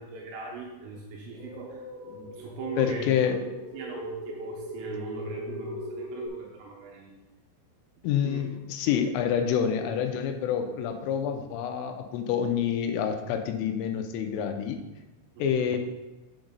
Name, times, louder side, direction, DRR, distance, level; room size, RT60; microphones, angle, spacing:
voice 1, 0.0-3.4 3.7-7.1 8.2-8.4 15.4-15.8, right 3 dB, 85° right, -1 dB, 3.6 m, -40 dB
sound 1, 1.3-6.3, right 1 dB, 35° right, 2.9 m, -39 dB
voice 2, 2.8-3.4 8.0-14.8 15.4-15.8, left 8 dB, 85° left, 5 dB, 3.4 m, -27 dB
8.9 x 7.5 x 3.9 m, 1.1 s
omnidirectional pair, 5.8 m